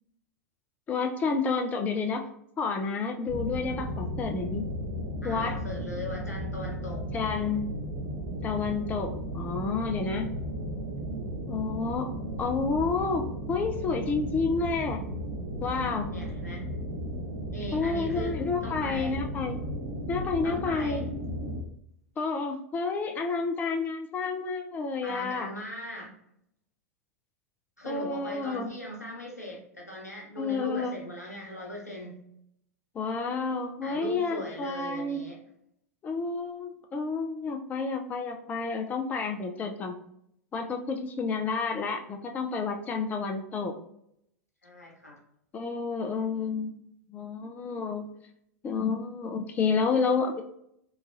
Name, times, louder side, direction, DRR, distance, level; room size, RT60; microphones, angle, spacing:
voice 1, 0.9-2.2 2.6-4.6 5.2-5.6 7.1-7.7 8.4-10.3 11.5-12.1 12.4-15.0 15.6-16.1 17.7-19.6 20.1-21.1 22.2-25.5 27.9-28.7 30.4-30.9 32.9-35.2 36.0-40.0 40.5-43.7 45.5-46.8 47.1-48.0 48.6-50.4, left 4 dB, 20° left, 4 dB, 0.3 m, -30 dB
sound 1, 3.3-21.6, equal, 60° right, 0.5 m, -35 dB
voice 2, 5.2-7.1 16.1-16.7 17.5-19.2 20.4-21.1 25.0-26.1 27.8-32.2 33.8-35.4 44.6-45.2, equal, 90° left, -1 dB, 0.8 m, -39 dB
2.9 x 2.3 x 2.5 m, 0.73 s
figure-of-eight pair, 90°, 8 cm